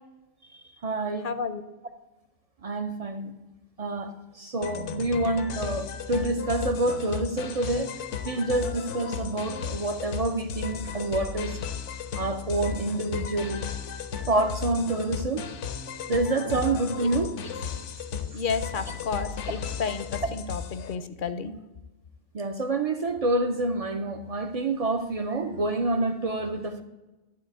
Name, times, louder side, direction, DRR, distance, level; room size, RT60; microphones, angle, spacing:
voice 1, 0.5-1.3 2.6-3.4 3.8-7.9 8.2-11.6 12.2-13.6 14.3-15.4 16.1-17.3 19.2-19.3 22.3-26.8, right 2 dB, 50° right, 8 dB, 0.4 m, -27 dB
voice 2, 1.2-1.6 18.3-21.5, left 5 dB, 55° left, 12 dB, 0.6 m, -31 dB
sound 1, 4.6-20.9, left 7 dB, 80° left, 1.0 m, -35 dB
11.5 x 4.1 x 8.0 m, 1.1 s
omnidirectional pair, 1.2 m